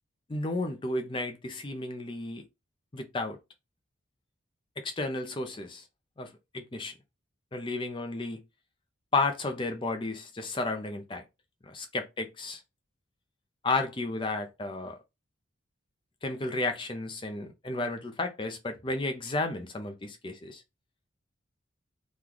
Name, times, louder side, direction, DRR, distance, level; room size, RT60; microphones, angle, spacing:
voice 1, 0.3-2.4 2.9-3.4 4.8-5.8 6.2-6.3 6.5-6.9 7.5-8.4 9.1-11.2 11.7-12.6 13.6-15.0 16.2-20.6, left 2 dB, 25° left, 0.5 m, -32 dB
3.0 x 2.2 x 3.8 m
head